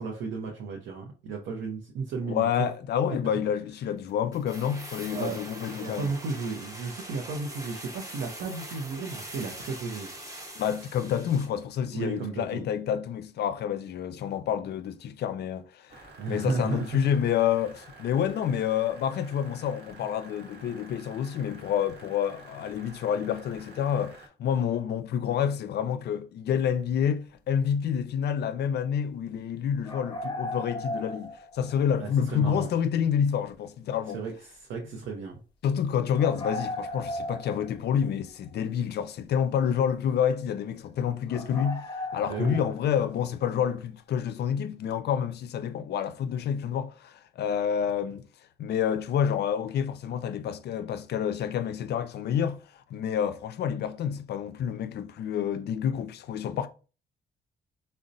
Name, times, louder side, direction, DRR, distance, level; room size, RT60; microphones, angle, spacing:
voice 1, 0.0-2.7 5.1-5.4 5.7-10.1 11.9-12.7 16.2-16.9 32.0-32.7 34.1-35.4 42.2-42.6, right 4 dB, 90° right, 0.6 m, -34 dB
voice 2, 2.3-6.1 10.6-16.0 16.3-34.2 35.6-48.2 48.6-56.7, left 8 dB, 65° left, 0.4 m, -28 dB
sound 1, 4.3-11.6 11.9-12.0, right 1 dB, 20° right, 0.7 m, -43 dB
sound 2, 15.9-24.3, right 2 dB, 65° right, 1.0 m, -50 dB
sound 3, 29.8-31.9 32.1-32.2 36.1-38.1 38.5-38.6 39.6-39.7 40.1-40.2 40.7-40.9 41.3-43.2, left 1 dB, 25° left, 0.9 m, -36 dB
3.8 x 2.1 x 2.5 m
cardioid pair, 80°, 18 cm